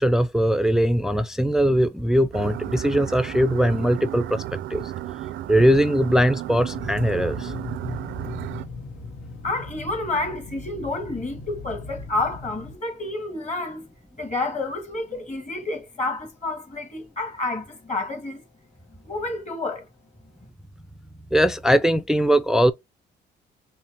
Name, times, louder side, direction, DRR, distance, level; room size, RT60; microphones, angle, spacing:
voice 1, 0.0-4.4 4.7-4.9 5.5-7.5 21.3-22.7, equal, 5° right, 0.3 m, -20 dB
sound 1, 2.3-8.7, right 13 dB, 70° right, 0.4 m, -33 dB
sound 2, 6.7-12.8, left 3 dB, 85° left, 0.9 m, -38 dB
voice 2, 9.4-13.8 14.2-18.4 19.0-19.9, left 2 dB, 35° left, 1.6 m, -29 dB
5.6 x 2.1 x 2.8 m
cardioid pair, 90°, 20 cm